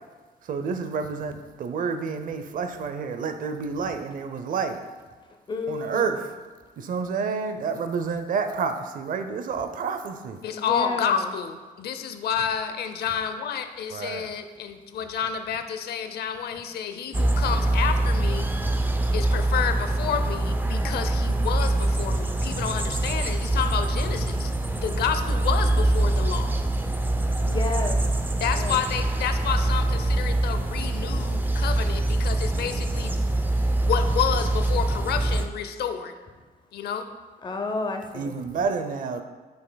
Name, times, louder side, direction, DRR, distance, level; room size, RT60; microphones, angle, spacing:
voice 1, 0.5-4.8 5.7-6.3 6.8-10.4 13.9-14.3 38.1-39.2, right 5 dB, 55° right, 8 dB, 0.6 m, -29 dB
voice 2, 5.5-6.1 10.5-11.2 27.4-28.1 28.5-28.8 37.4-38.6, left 3 dB, 30° left, 5 dB, 0.7 m, -31 dB
voice 3, 10.4-18.6 19.1-26.6 28.4-33.1 33.8-36.1 36.7-37.1, left 8 dB, 70° left, 8 dB, 0.6 m, -30 dB
sound 1, 17.1-35.5, right 2 dB, 10° right, 0.5 m, -24 dB
10.0 x 5.4 x 2.3 m, 1.4 s
cardioid pair, 110°, 17 cm